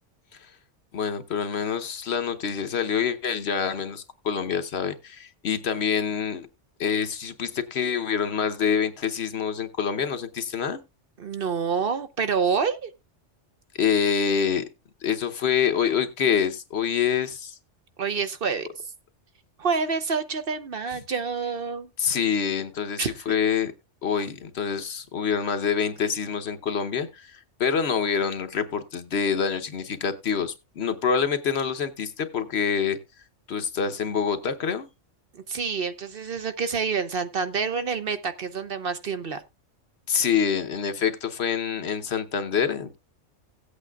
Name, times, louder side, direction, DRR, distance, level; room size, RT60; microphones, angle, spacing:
voice 1, 0.9-6.5 6.8-10.8 13.8-14.6 15.0-17.6 22.0-23.7 24.0-33.0 33.5-34.9 40.1-43.0, left 7 dB, 60° left, 1.1 m, -26 dB
voice 2, 11.2-12.9 18.0-18.7 19.6-21.9 23.0-23.1 35.3-39.4, right 5 dB, 55° right, 0.9 m, -27 dB
17.5 x 8.3 x 2.3 m
omnidirectional pair, 1.3 m